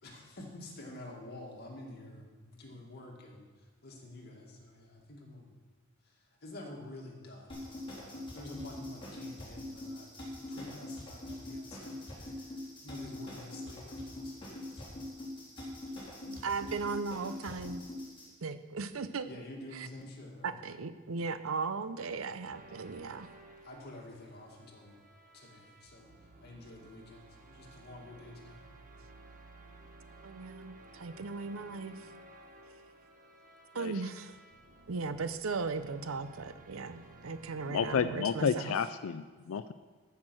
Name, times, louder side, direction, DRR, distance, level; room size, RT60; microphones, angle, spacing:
voice 1, 0.0-3.5 3.8-5.5 6.0-15.4 19.3-20.6 23.6-25.0 25.3-28.7, left 1 dB, 50° left, 0 dB, 2.1 m, -49 dB
sound 1, 7.5-18.3, left 1 dB, 25° left, 4.1 m, -43 dB
voice 2, 16.3-17.8 18.4-19.3 20.4-23.3 30.2-32.0 33.7-34.4 34.9-38.8, right 4 dB, 85° right, 12 dB, 0.7 m, -37 dB
sound 2, 22.5-38.0, right 2 dB, 40° right, 1.2 m, -55 dB
voice 3, 37.7-39.7, left 6 dB, 90° left, 12 dB, 0.4 m, -31 dB
14.0 x 5.9 x 6.2 m, 1.4 s
head